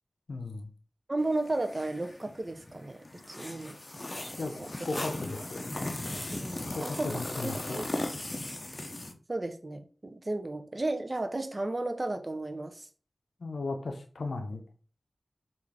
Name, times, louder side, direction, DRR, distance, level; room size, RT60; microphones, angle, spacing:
voice 1, 0.3-0.7 4.4-5.7 6.7-7.9 13.4-14.6, left 3 dB, 85° left, 0.5 m, -36 dB
voice 2, 1.1-4.7 6.3-7.9 9.3-12.9, right 2 dB, 40° right, 0.5 m, -34 dB
sound 1, 1.2-9.1, left 1 dB, 40° left, 0.5 m, -38 dB
3.5 x 2.5 x 3.3 m
cardioid pair, 40°, 0 cm